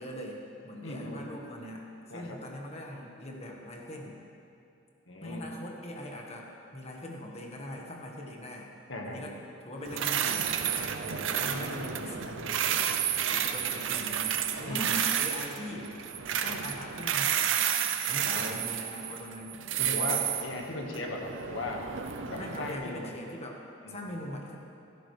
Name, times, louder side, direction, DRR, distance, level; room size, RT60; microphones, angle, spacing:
voice 1, 0.0-4.2 5.2-8.7 9.0-9.3 9.6-10.5 11.2-12.9 13.3-15.9 16.3-17.6 18.1-19.6 22.4-23.6 23.9-24.6, left 1 dB, 35° left, 0 dB, 1.5 m, -41 dB
voice 2, 0.8-1.2 2.1-2.4 5.1-5.5 8.9-9.2 11.1-11.3 14.7-15.0 18.1-18.6 19.8-21.8 22.3-23.1 23.8-24.2, left 2 dB, 90° left, 1 dB, 1.6 m, -37 dB
sound 1, 9.9-22.7, right 9 dB, 85° right, 0.6 m, -31 dB
15.5 x 13.0 x 3.4 m, 2.7 s
head